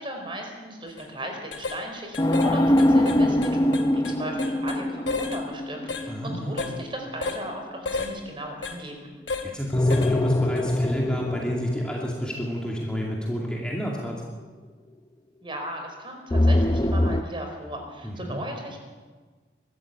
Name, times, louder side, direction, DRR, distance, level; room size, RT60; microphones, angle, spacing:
voice 1, 0.0-9.1 15.4-18.8, right 1 dB, 30° right, 3 dB, 4.6 m, -36 dB
sound 1, 0.9-1.1 1.5-1.8 2.1-2.5 2.8-4.8 5.1-5.4 5.9-6.1 6.6-6.7 7.2-7.4 7.9-8.1 8.6-8.8 9.3-9.5 9.9-10.1 10.6-10.7, left 4 dB, 85° left, 2.4 m, -32 dB
sound 2, 2.2-7.3 9.7-13.7 16.3-17.2, left 1 dB, 20° left, 0.7 m, -24 dB
voice 2, 6.1-6.6 9.5-14.2 18.0-18.4, equal, 5° left, -2 dB, 2.4 m, -30 dB
23.5 x 14.0 x 8.7 m, 1.4 s
head